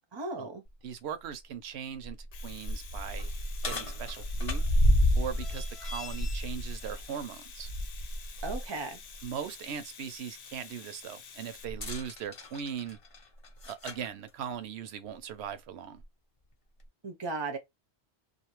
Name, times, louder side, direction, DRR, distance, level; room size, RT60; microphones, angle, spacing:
voice 1, 0.1-0.6 8.4-9.0 17.0-17.6, right 3 dB, 35° right, 0.4 m, -36 dB
sound 1, 0.7-0.8 1.3-1.4 1.9-8.6 9.1-9.2 11.7-14.1 15.1-15.2 16.0-16.1, equal, 40° left, 0.6 m, -30 dB
voice 2, 0.8-2.2 2.4-3.3 3.6-4.6 5.1-7.7 9.2-13.0 13.6-16.0, right 8 dB, 70° right, 0.8 m, -39 dB
Domestic sounds home sounds, 2.1-11.6, left 7 dB, 70° left, 0.9 m, -50 dB
2.5 x 2.5 x 3.0 m
omnidirectional pair, 1.2 m